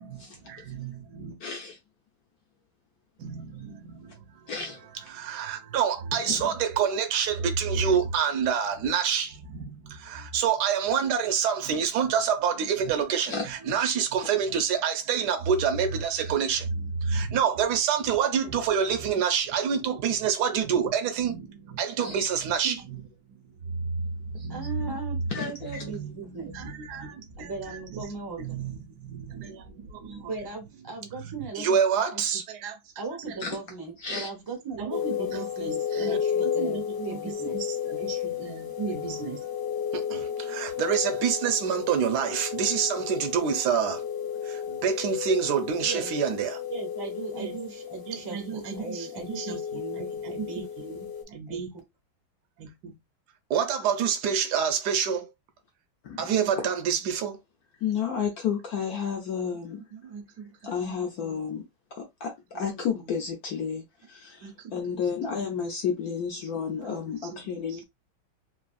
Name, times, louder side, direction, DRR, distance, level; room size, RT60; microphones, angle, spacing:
voice 1, 0.0-1.4 3.2-23.4 23.7-30.5 30.8-31.3 31.5-33.4 34.8-39.4 39.9-44.0 44.4-46.6 47.3-47.6 48.1-51.7 52.6-53.0 53.5-55.3 56.2-57.4 59.9-61.6 62.5-63.3 64.4-65.5 66.4-67.8, right 7 dB, 65° right, 1.1 m, -29 dB
voice 2, 1.4-1.7 4.5-4.8 6.4-6.5 13.3-13.5 22.0-22.2 25.3-25.8 33.4-33.6 34.0-34.3 56.0-56.3 57.8-59.8 60.6-61.6 62.0-63.8 64.1-67.8, left 6 dB, 70° left, 0.9 m, -31 dB
voice 3, 24.5-26.6 27.4-28.6 30.3-31.8 32.1-32.4 33.0-37.6 45.8-46.1 46.7-50.7 51.5-51.8, right 4 dB, 20° right, 0.5 m, -38 dB
sound 1, 34.9-51.2, left 8 dB, 30° left, 0.4 m, -33 dB
3.5 x 2.3 x 2.4 m
omnidirectional pair, 2.2 m